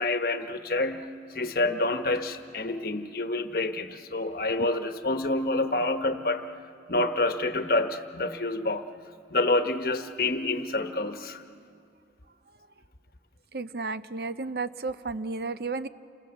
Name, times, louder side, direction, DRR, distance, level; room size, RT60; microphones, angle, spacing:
voice 1, 0.0-6.5 6.9-8.8 9.3-11.4, left 2 dB, 55° left, 8 dB, 1.1 m, -28 dB
voice 2, 13.5-15.9, right 3 dB, 60° right, 13 dB, 0.6 m, -32 dB
29.0 x 24.5 x 7.2 m, 2.4 s
head